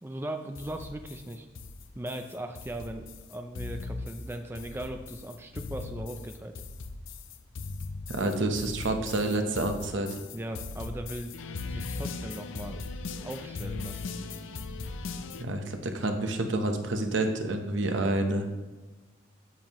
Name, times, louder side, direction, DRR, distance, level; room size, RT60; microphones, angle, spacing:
voice 1, 0.0-1.5 2.0-6.5 10.3-11.3 11.7-12.8 13.2-14.2, right 1 dB, 10° right, 5 dB, 0.4 m, -38 dB
sound 1, 0.6-15.4, left 3 dB, 80° left, 0.5 m, -39 dB
voice 2, 8.1-10.2 15.4-18.5, right 2 dB, 75° right, 5 dB, 0.9 m, -28 dB
9.5 x 7.3 x 3.0 m, 1.2 s
head